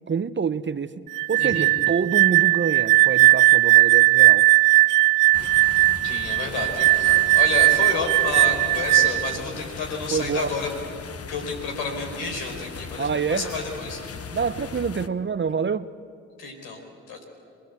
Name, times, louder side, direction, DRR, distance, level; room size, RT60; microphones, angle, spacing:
voice 1, 0.1-1.0 1.3-4.5 7.1-7.2 10.1-10.5 13.0-13.5 14.3-15.9, right 6 dB, 30° right, 14 dB, 0.8 m, -26 dB
sound 1, 1.1-9.4, right 20 dB, 60° right, 0.5 m, -18 dB
sound 2, 5.3-15.1, left 6 dB, 40° left, 1.3 m, -38 dB
voice 2, 6.0-10.7 11.3-14.0 16.4-16.8 17.1-17.2, left 4 dB, 80° left, 3 dB, 4.6 m, -30 dB
26.5 x 20.0 x 8.3 m, 2.3 s
hypercardioid pair, 55°, 37 cm